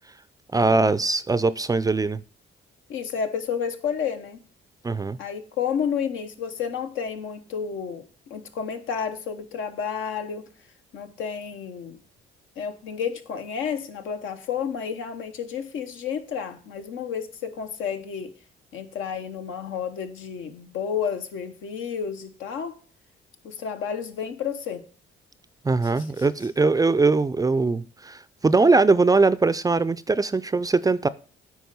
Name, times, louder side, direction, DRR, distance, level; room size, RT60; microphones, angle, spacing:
voice 1, 0.5-2.2 4.8-5.2 25.6-31.1, right 3 dB, 20° right, 0.4 m, -21 dB
voice 2, 2.9-4.4 5.2-10.4 10.9-12.0 12.6-18.3 18.7-22.7 23.4-24.8 26.0-26.2, left 7 dB, 85° left, 1.1 m, -31 dB
9.4 x 4.3 x 5.4 m
cardioid pair, 90°, 20 cm